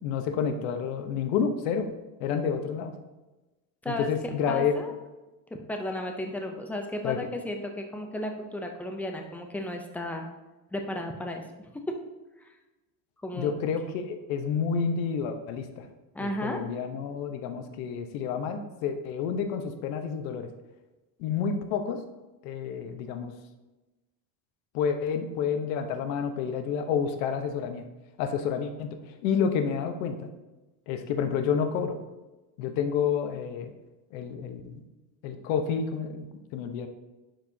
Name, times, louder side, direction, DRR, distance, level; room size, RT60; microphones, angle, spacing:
voice 1, 0.0-1.9 2.2-2.9 3.9-4.7 7.0-7.2 13.3-15.9 16.2-20.5 21.2-22.0 22.4-23.3 24.7-27.8 28.2-30.3 30.9-32.0 32.6-33.7 34.1-34.8 35.2-36.3 36.5-36.9, left 7 dB, 90° left, 7 dB, 1.0 m, -29 dB
voice 2, 3.8-4.9 5.7-10.3 10.7-12.0 13.2-13.5 16.1-16.6, left 1 dB, 5° left, 3 dB, 0.5 m, -34 dB
11.5 x 4.8 x 2.7 m, 1.1 s
cardioid pair, 160°, 40 cm